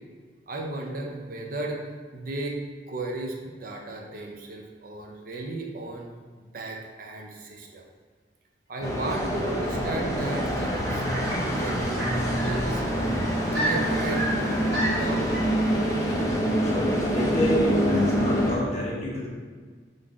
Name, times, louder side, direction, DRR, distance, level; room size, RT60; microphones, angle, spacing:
voice 1, 0.5-1.8 2.1-2.6 2.9-7.9 8.7-11.2 11.6-12.0 12.4-12.8 13.5-14.5 14.9-15.3, right 2 dB, 50° right, 1 dB, 0.5 m, -35 dB
sound 1, 8.8-18.6, equal, 20° left, 0.6 m, -26 dB
sound 2, 10.2-15.5, equal, 90° right, 1.4 m, -32 dB
voice 2, 16.6-19.3, equal, 35° left, -5 dB, 1.1 m, -28 dB
3.7 x 2.6 x 4.6 m, 1.5 s
head